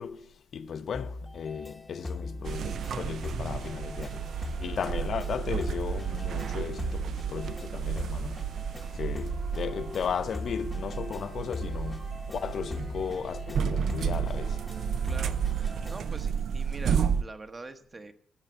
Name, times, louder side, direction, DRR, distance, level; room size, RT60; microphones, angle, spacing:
voice 1, 0.0-8.4 8.7-14.6, left 7 dB, 50° left, 0.6 m, -36 dB
sound 1, 0.9-16.2, left 3 dB, 10° left, 0.9 m, -41 dB
sound 2, 2.4-17.2, right 7 dB, 60° right, 0.5 m, -32 dB
sound 3, 8.9-15.8, right 5 dB, 85° right, 5.9 m, -57 dB
voice 2, 15.0-18.1, right 3 dB, 25° right, 1.0 m, -44 dB
12.0 x 8.1 x 8.0 m
cardioid pair, 145°, 0 cm